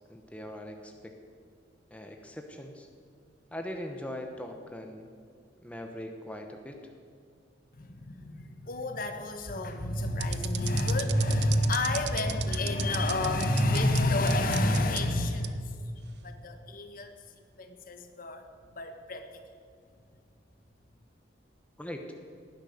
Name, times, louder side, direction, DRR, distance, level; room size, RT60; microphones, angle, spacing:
voice 1, 0.1-1.1 1.9-2.9 3.5-5.1 5.6-6.8 21.8-22.0, left 1 dB, 5° left, 3 dB, 1.0 m, -40 dB
voice 2, 7.8-15.9 16.2-17.1 17.6-18.4 18.7-19.3, left 1 dB, 50° left, 7 dB, 1.3 m, -29 dB
sound 1, 10.2-14.0 14.3-15.0 15.4-15.5 16.2-16.4, right 14 dB, 65° right, 0.7 m, -36 dB
18.5 x 10.5 x 6.6 m, 2.2 s
head